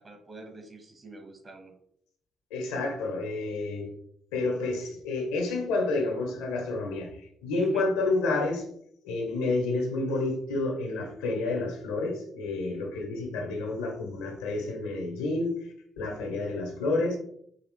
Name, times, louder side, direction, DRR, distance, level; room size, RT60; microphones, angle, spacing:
voice 1, 0.0-1.7 7.6-7.9, right 2 dB, 35° right, 4 dB, 1.5 m, -45 dB
voice 2, 2.5-3.9 4.3-8.6 9.0-15.6 16.0-17.2, left 2 dB, 80° left, 2 dB, 1.1 m, -29 dB
4.8 x 3.2 x 3.2 m, 0.69 s
hypercardioid pair, 45°, 0 cm